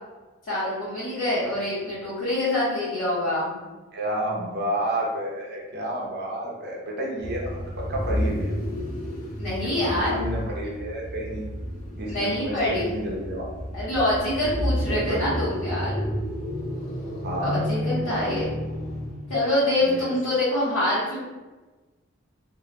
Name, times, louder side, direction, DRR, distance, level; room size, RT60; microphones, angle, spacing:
voice 1, 0.5-3.6 9.4-10.2 12.1-13.0 13.7-16.0 17.4-18.5 19.3-21.2, left 1 dB, 80° left, -12 dB, 0.8 m, -25 dB
voice 2, 3.9-8.5 9.6-11.5 11.9-13.5 14.9-15.2 17.2-17.6 19.8-20.1, right 1 dB, 50° right, -3 dB, 0.6 m, -30 dB
sound 1, 7.2-19.4, equal, 35° left, 0.4 m, -31 dB
2.2 x 2.0 x 2.8 m, 1.2 s
head